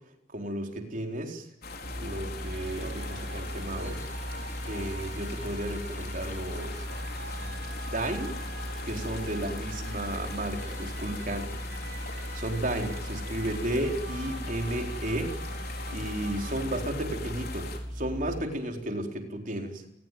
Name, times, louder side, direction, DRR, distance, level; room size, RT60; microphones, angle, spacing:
voice 1, 0.3-1.5 1.9-4.0 4.7-7.0 7.3-7.5 7.9-8.3 8.8-11.6 12.3-15.4 15.9-19.8, right 1 dB, 45° right, 4 dB, 4.2 m, -33 dB
sound 1, 1.6-17.8, left 4 dB, 55° left, 4.6 m, -41 dB
sound 2, 1.8-18.4, equal, 30° right, 4.9 m, -38 dB
sound 3, 2.4-16.6, right 4 dB, 65° right, 4.4 m, -47 dB
29.5 x 20.0 x 9.4 m, 0.91 s
head